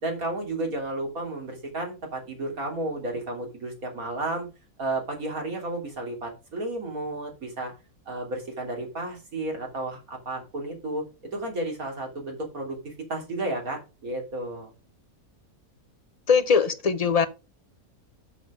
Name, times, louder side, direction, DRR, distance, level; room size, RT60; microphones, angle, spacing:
voice 1, 0.0-4.5 4.8-7.7 8.1-11.0 11.3-14.7, right 2 dB, 70° right, 3.4 m, -32 dB
voice 2, 16.3-17.3, left 5 dB, 35° left, 0.6 m, -21 dB
7.3 x 6.9 x 5.0 m
omnidirectional pair, 1.6 m